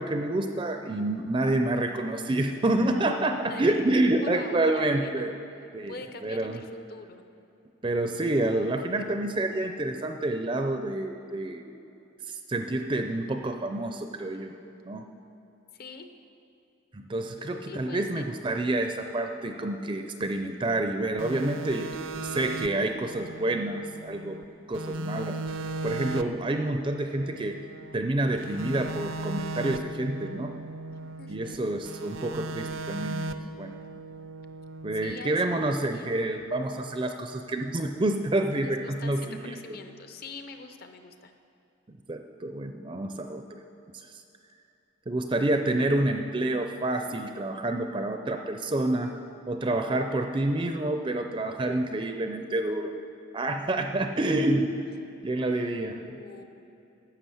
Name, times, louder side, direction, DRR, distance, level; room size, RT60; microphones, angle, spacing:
voice 1, 0.0-5.4 5.7-5.9 6.2-6.6 7.8-11.6 12.3-14.5 14.9-15.0 16.9-21.9 22.2-24.4 24.7-27.6 27.9-30.5 31.3-33.2 33.6-33.7 34.8-39.5 42.1-43.6 43.9-44.2 45.1-49.2 49.5-52.9 53.3-54.8 55.2-56.0, right 2 dB, 25° right, 6 dB, 0.4 m, -28 dB
voice 2, 4.2-7.2 15.7-16.1 17.7-18.3 31.2-31.9 34.9-35.6 35.9-36.1 38.5-41.3 55.4-56.4, left 3 dB, 50° left, 7 dB, 0.7 m, -44 dB
sound 1, 21.2-24.4 24.7-28.0 28.4-31.6 31.9-35.1, right 2 dB, 75° right, 0.5 m, -37 dB
11.5 x 7.7 x 7.0 m, 2.8 s
head